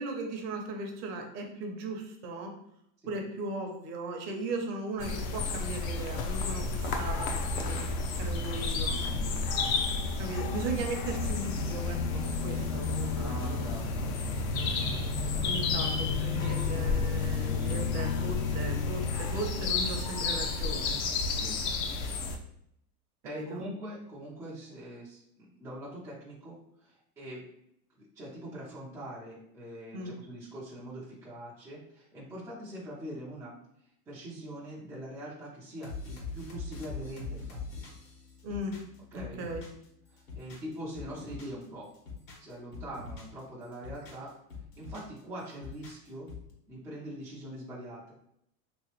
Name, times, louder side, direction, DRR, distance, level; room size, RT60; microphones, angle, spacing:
voice 1, 0.0-2.5 3.1-7.9 8.2-9.0 10.2-13.7 15.4-21.0 23.2-23.6 29.9-30.1 38.4-38.8 39.1-39.6, right 2 dB, 35° right, 3 dB, 0.7 m, -37 dB
sound 1, 5.0-22.4, left 4 dB, 60° left, 0.7 m, -31 dB
voice 2, 8.9-9.7 13.1-15.0 16.3-16.7 17.5-17.8 21.4-21.6 23.2-25.2 25.5-27.4 28.2-33.5 34.1-37.6 39.1-39.4 40.1-41.9 42.4-44.3 44.8-46.3 46.7-48.1, right 1 dB, 10° right, -8 dB, 0.4 m, -43 dB
sound 2, 35.8-39.9 40.2-41.6 41.9-43.4 43.7-45.2 45.5-46.5, left 4 dB, 75° left, 1.4 m, -43 dB
3.1 x 3.1 x 3.0 m, 0.74 s
supercardioid pair, 140°, 47 cm